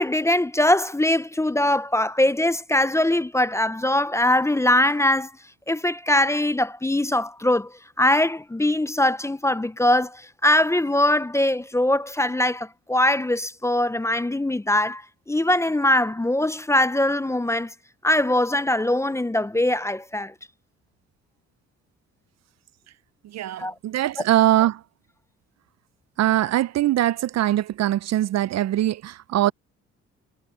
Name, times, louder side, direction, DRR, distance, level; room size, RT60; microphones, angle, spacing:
voice 1, 0.0-5.3 5.7-17.7 18.0-20.3 23.6-23.7, left 1 dB, 10° left, 0.6 m, -22 dB
voice 2, 23.2-24.8 26.2-29.5, right 13 dB, 60° right, 0.5 m, -22 dB
cardioid pair, 90°, 30 cm